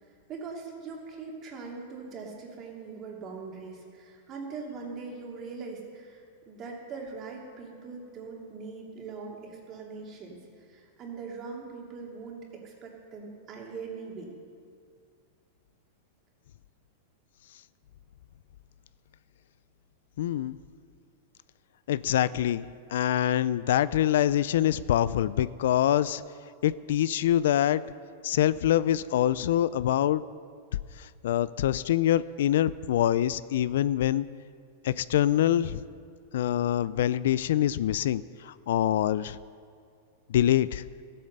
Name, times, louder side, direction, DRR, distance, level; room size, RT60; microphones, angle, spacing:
voice 1, 0.3-10.4 10.7-14.3, right 4 dB, 35° right, -1 dB, 2.7 m, -41 dB
voice 2, 20.2-20.6 21.9-22.7 22.9-26.2 26.6-27.8 28.2-30.2 31.0-34.3 34.8-35.8 36.3-39.4 40.3-40.8, left 11 dB, 75° left, 18 dB, 0.3 m, -25 dB
14.0 x 8.6 x 6.7 m, 2.2 s
hypercardioid pair, 130°, 0 cm